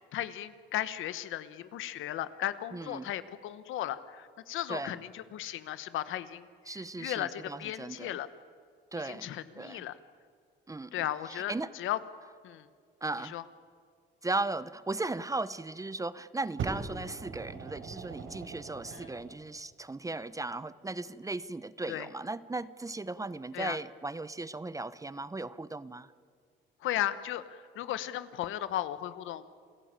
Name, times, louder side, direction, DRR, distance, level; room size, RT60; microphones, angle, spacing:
voice 1, 0.1-8.3 8.9-10.0 10.9-12.0 12.4-12.7 13.2-13.4 18.9-19.1 21.9-22.1 23.5-23.8 26.8-29.5, left 12 dB, 85° left, 13 dB, 1.2 m, -36 dB
voice 2, 2.7-3.1 4.7-5.0 6.7-8.1 8.9-9.3 9.6-9.8 10.7-11.7 13.0-13.4 14.2-26.1, right 2 dB, 15° right, 17 dB, 0.8 m, -37 dB
Fire, 16.6-19.4 20.2-20.3, right 5 dB, 75° right, 4.1 m, -40 dB
28.0 x 16.5 x 8.9 m, 2.1 s
cardioid pair, 90°, 20 cm